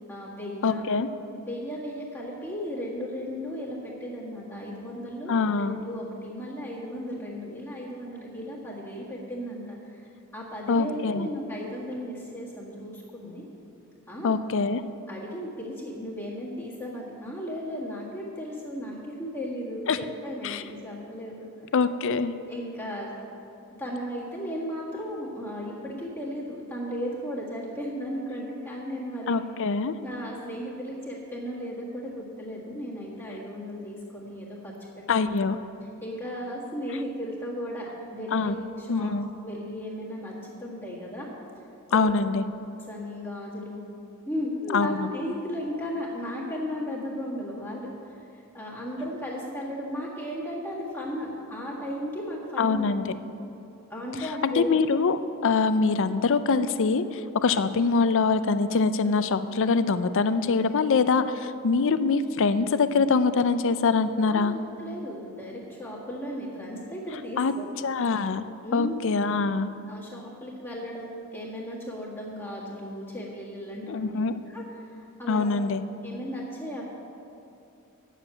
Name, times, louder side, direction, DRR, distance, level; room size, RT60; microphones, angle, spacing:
voice 1, 0.1-0.8 1.4-10.0 10.3-13.5 14.1-14.4 15.1-21.5 22.5-23.1 23.8-29.4 30.0-35.4 36.0-39.1 39.4-41.3 41.9-42.1 42.9-43.8 44.3-52.9 53.9-54.7 64.3-67.7 68.6-69.1 69.9-76.8, equal, 10° left, -6 dB, 1.8 m, -35 dB
voice 2, 0.6-1.1 5.3-5.8 10.7-11.3 14.2-14.8 19.9-20.0 20.4-20.6 21.7-22.3 29.3-29.9 35.1-35.6 38.3-38.5 38.9-39.3 41.9-42.4 44.7-45.1 52.6-53.0 54.6-64.5 67.4-67.5 67.8-68.4 68.7-69.7 73.9-74.3 75.3-75.8, left 4 dB, 60° left, 12 dB, 0.5 m, -24 dB
9.2 x 7.3 x 8.8 m, 2.7 s
head